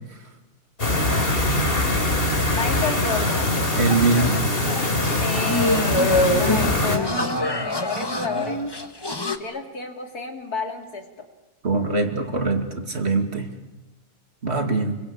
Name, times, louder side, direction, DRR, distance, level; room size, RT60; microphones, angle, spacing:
sound 1, 0.8-7.0, left 1 dB, 35° left, 3.5 m, -22 dB
voice 1, 2.5-3.5 5.2-8.6 9.4-11.3, left 4 dB, 80° left, 3 dB, 3.3 m, -31 dB
voice 2, 3.8-4.5 11.6-13.5 14.4-14.9, right 3 dB, 45° right, 5 dB, 2.5 m, -22 dB
sound 2, 3.9-9.4, left 1 dB, 15° left, 1.5 m, -25 dB
29.0 x 23.5 x 8.6 m, 1.1 s
omnidirectional pair, 1.6 m